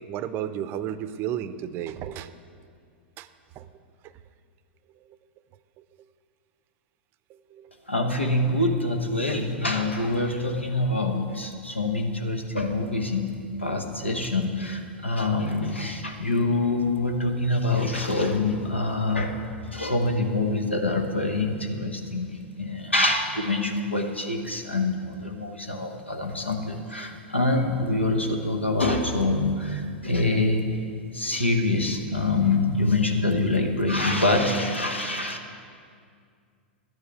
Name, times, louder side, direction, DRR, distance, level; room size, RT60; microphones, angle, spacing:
voice 1, 0.1-2.3 3.2-3.3 3.6-3.7 7.5-7.7, right 10 dB, 40° right, 13 dB, 0.5 m, -32 dB
voice 2, 7.9-19.4 19.6-22.3 22.6-30.8 31.1-35.4, left 2 dB, 90° left, 3 dB, 1.2 m, -25 dB
12.0 x 9.5 x 4.9 m, 2.2 s
figure-of-eight pair, 95°, 6 cm